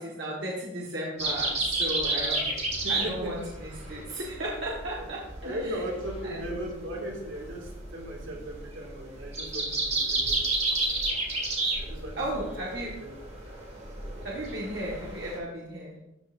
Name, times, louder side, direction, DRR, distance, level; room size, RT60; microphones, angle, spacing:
voice 1, 0.0-2.5 2.9-5.8 6.2-6.4 12.2-12.9 14.2-16.0, right 1 dB, 60° right, -5 dB, 1.4 m, -35 dB
sound 1, 1.2-15.4, right 2 dB, 30° right, 1.8 m, -31 dB
voice 2, 2.0-2.5 2.8-3.4 4.9-5.1 5.4-10.8 11.1-11.2 11.8-12.7 12.9-13.2, right 1 dB, 80° right, -1 dB, 2.1 m, -38 dB
12.5 x 5.6 x 2.6 m, 0.92 s
head